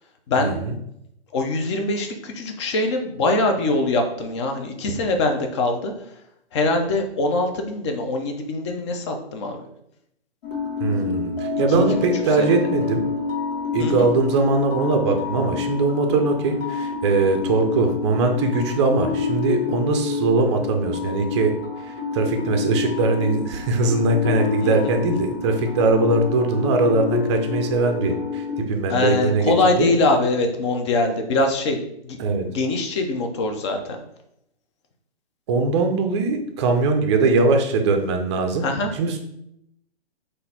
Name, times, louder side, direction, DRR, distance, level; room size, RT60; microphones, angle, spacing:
voice 1, 0.4-0.7 10.8-13.0 13.7-21.5 21.8-29.9 32.2-32.4 35.5-38.7 38.9-39.2, right 3 dB, 30° right, 5 dB, 0.5 m, -21 dB
voice 2, 1.3-5.9 6.5-9.6 11.7-11.8 12.4-12.6 13.8-14.1 24.6-24.9 28.9-31.8 32.0-32.2 32.4-34.0 38.6-38.9, left 2 dB, 30° left, 4 dB, 0.5 m, -23 dB
sound 1, 10.4-28.6, left 5 dB, 70° left, 1.0 m, -28 dB
3.9 x 2.6 x 4.1 m, 0.77 s
hypercardioid pair, 140°, 31 cm